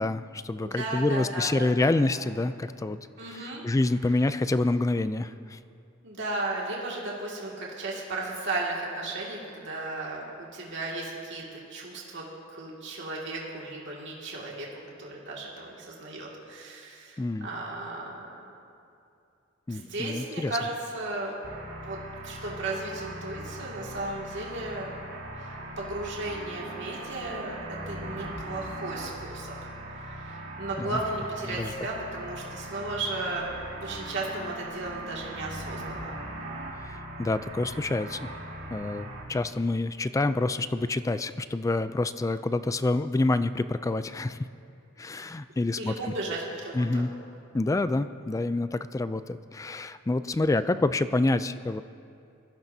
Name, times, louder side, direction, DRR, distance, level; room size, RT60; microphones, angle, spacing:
voice 1, 0.0-3.0 3.3-5.6 17.2-17.5 19.7-20.6 30.8-31.0 31.5-31.7 36.8-38.3 38.7-44.4 45.0-46.1 46.7-47.1 47.5-51.8, left 2 dB, 15° left, 12 dB, 0.3 m, -27 dB
voice 2, 0.6-2.0 3.2-3.6 6.0-14.7 15.0-18.3 19.7-21.4 21.8-25.0 25.3-27.6 27.9-29.6 29.9-36.2 45.8-47.0, right 2 dB, 60° right, -3 dB, 2.2 m, -35 dB
sound 1, 21.4-39.2, right 1 dB, 80° right, 2.9 m, -40 dB
22.5 x 14.5 x 2.7 m, 2.6 s
head